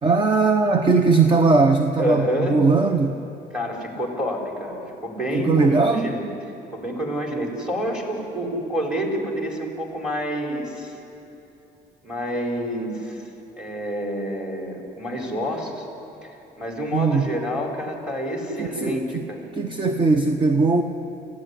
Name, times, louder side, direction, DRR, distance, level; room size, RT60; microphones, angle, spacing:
voice 1, 0.0-3.2 5.3-6.1 16.9-17.3 18.6-19.2 19.6-20.8, right 3 dB, 25° right, 7 dB, 0.9 m, -19 dB
voice 2, 2.0-2.6 3.5-6.3 6.7-10.9 12.0-13.3 13.6-15.9 16.2-19.5, equal, 5° right, 0 dB, 4.5 m, -28 dB
24.5 x 15.5 x 10.0 m, 2.9 s
cardioid pair, 125°, 18 cm